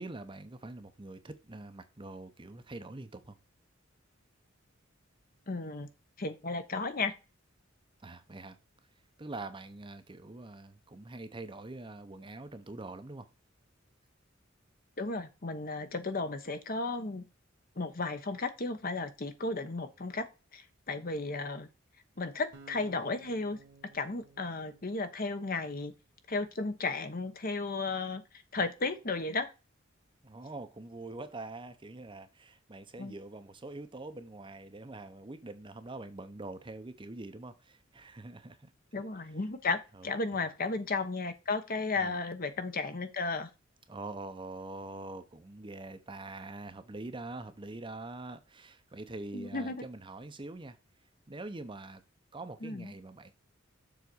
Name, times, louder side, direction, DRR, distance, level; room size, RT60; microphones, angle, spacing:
voice 1, 0.0-3.4 8.0-8.6 9.2-13.3 30.2-39.0 39.9-40.5 42.0-42.2 43.9-50.8 51.3-52.0 52.3-53.3, right 2 dB, 25° right, 0.7 m, -44 dB
voice 2, 5.5-5.9 6.2-7.1 15.0-17.2 17.8-20.2 20.5-21.7 22.2-23.6 23.9-25.9 26.3-28.2 28.5-29.5 33.0-33.1 38.9-43.5 49.3-49.8 52.6-52.9, left 3 dB, 45° left, 1.0 m, -34 dB
sound 1, 22.5-25.7, right 4 dB, 60° right, 1.4 m, -56 dB
7.1 x 4.0 x 6.1 m
head